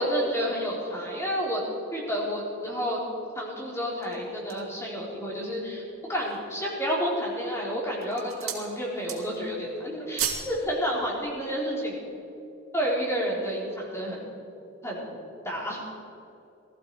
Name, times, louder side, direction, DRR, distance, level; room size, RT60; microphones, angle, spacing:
voice 1, 0.0-1.6 1.9-3.0 3.3-5.8 6.1-12.0 12.7-14.2 14.8-15.1 15.4-15.8, equal, 15° left, -4 dB, 4.1 m, -30 dB
sound 1, 3.8-4.8 5.4-5.5 6.0-6.5 7.2-7.6 7.9-8.7 9.0-9.5 9.8-10.5 10.8-11.0, right 9 dB, 85° right, 2.7 m, -34 dB
20.0 x 14.5 x 4.8 m, 2.8 s
head